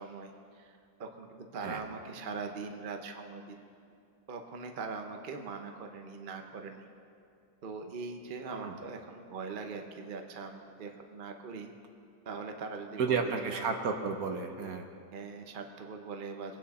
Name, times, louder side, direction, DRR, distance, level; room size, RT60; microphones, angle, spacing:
voice 1, 0.0-3.6 4.3-6.9 7.6-11.7 12.2-13.6 15.1-16.6, right 4 dB, 40° right, 4 dB, 0.8 m, -41 dB
voice 2, 13.0-14.9, right 5 dB, 60° right, 4 dB, 1.3 m, -32 dB
22.0 x 9.6 x 4.2 m, 2.4 s
omnidirectional pair, 1.9 m